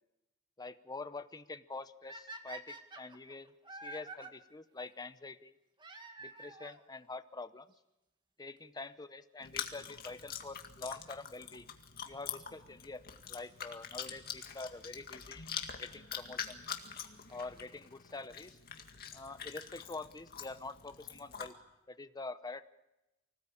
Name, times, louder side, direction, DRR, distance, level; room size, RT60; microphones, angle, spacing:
voice 1, 0.6-5.5 6.2-7.7 8.4-11.7 12.1-13.0 13.3-15.5 15.8-16.7 17.3-18.6 19.1-21.6 21.9-22.6, left 3 dB, 20° left, 12 dB, 0.7 m, -46 dB
sound 1, 2.1-4.3 5.8-6.8 7.8-7.9 8.6-8.7 8.8-8.9 10.8-11.1 13.9-14.0 15.0-15.1 16.6-16.7 17.0-17.1 17.3-17.4 17.6-17.7 17.8-17.9 18.1-18.2 18.4-18.5, right 2 dB, 20° right, 2.0 m, -48 dB
Chewing mastication, 9.4-21.5, left 8 dB, 45° left, 2.0 m, -45 dB
25.0 x 17.5 x 8.5 m, 0.97 s
head